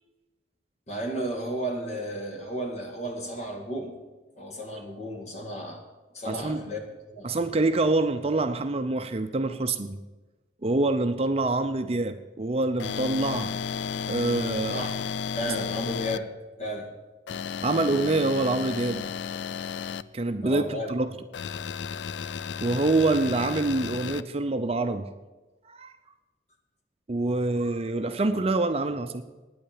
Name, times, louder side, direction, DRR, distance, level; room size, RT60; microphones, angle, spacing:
voice 1, 0.9-3.9 4.4-5.8 6.1-7.3 14.7-15.0 15.4-16.3 16.6-16.9 20.4-20.9, equal, 40° left, 2 dB, 2.1 m, -33 dB
voice 2, 6.3-6.6 7.2-10.0 10.6-13.5 14.1-14.9 17.6-19.1 20.1-21.1 22.6-25.1 25.7-25.9 27.1-29.2, right 2 dB, 35° right, 8 dB, 0.6 m, -26 dB
sound 1, 12.8-16.2 17.3-20.0 21.3-24.2, left 6 dB, 70° left, 0.4 m, -33 dB
9.7 x 8.6 x 8.7 m, 1.2 s
head